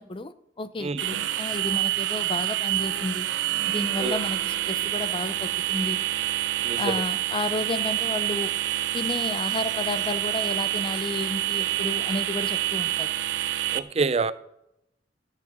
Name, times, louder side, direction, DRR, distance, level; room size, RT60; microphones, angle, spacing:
voice 1, 0.0-6.0 6.8-8.5 8.9-13.1, left 2 dB, 30° left, 0.6 m, -32 dB
sound 1, 1.0-13.8, right 14 dB, 75° right, 0.6 m, -27 dB
voice 2, 6.6-7.0 13.7-14.3, right 4 dB, 35° right, 0.5 m, -26 dB
14.5 x 5.9 x 7.1 m
head